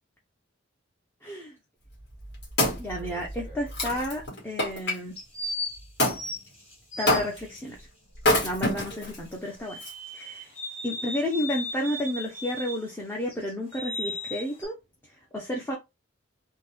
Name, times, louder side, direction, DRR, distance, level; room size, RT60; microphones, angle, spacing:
voice 1, 1.2-1.5 2.8-5.2 7.0-7.9 8.4-9.8 10.1-10.5 10.8-14.7 15.1-15.8, left 1 dB, 10° left, -1 dB, 0.6 m, -31 dB
Wood, 2.0-5.0 6.0-6.2 7.1-7.6 8.2-9.2 9.8-9.9, left 1 dB, 60° left, 1.5 m, -26 dB
sound 1, 2.7-3.7 5.2-7.6 9.7-12.9 13.3-14.7, left 1 dB, 30° left, 1.8 m, -37 dB
3.6 x 2.2 x 3.0 m, 0.23 s
head